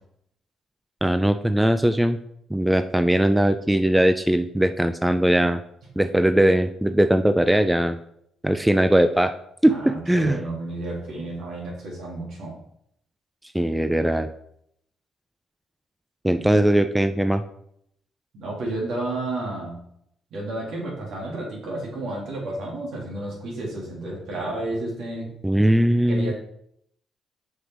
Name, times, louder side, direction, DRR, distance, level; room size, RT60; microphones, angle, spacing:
voice 1, 1.0-2.2 2.5-5.6 6.0-8.0 8.4-9.4 9.6-10.4 13.5-14.3 16.2-17.4 25.4-26.3, right 1 dB, 5° right, 9 dB, 0.4 m, -20 dB
voice 2, 9.7-12.6 16.3-16.6 18.3-19.8 20.3-25.3 26.1-26.3, right 2 dB, 70° right, -3 dB, 3.2 m, -31 dB
6.3 x 5.1 x 4.7 m, 0.72 s
cardioid pair, 90°, 0 cm